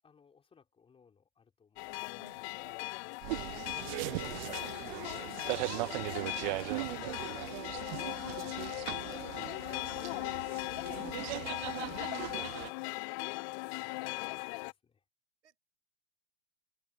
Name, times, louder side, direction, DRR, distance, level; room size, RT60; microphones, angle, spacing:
voice 1, 0.0-2.1 2.4-5.7 6.6-6.8 7.2-7.7 12.8-15.0, left 6 dB, 15° left, 3.4 m, -66 dB
sound 1, 1.8-14.7, left 30 dB, 35° left, 0.4 m, -39 dB
voice 2, 2.1-2.8 8.5-8.7 11.6-12.6 15.4-15.6, right 8 dB, 80° right, 3.8 m, -61 dB
sound 2, 3.2-12.7, right 22 dB, 45° right, 0.5 m, -39 dB
hypercardioid pair, 110°, 34 cm